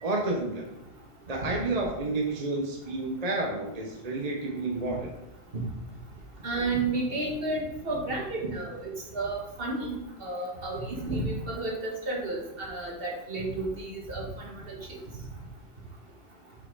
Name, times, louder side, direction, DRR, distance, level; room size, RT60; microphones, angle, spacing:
voice 1, 0.0-0.7 1.3-5.1, right 2 dB, 40° right, 0 dB, 0.9 m, -30 dB
voice 2, 6.4-10.0 10.2-14.3 14.7-15.0, right 2 dB, 55° right, -2 dB, 1.7 m, -32 dB
5.9 x 5.6 x 3.9 m, 0.88 s
omnidirectional pair, 1.1 m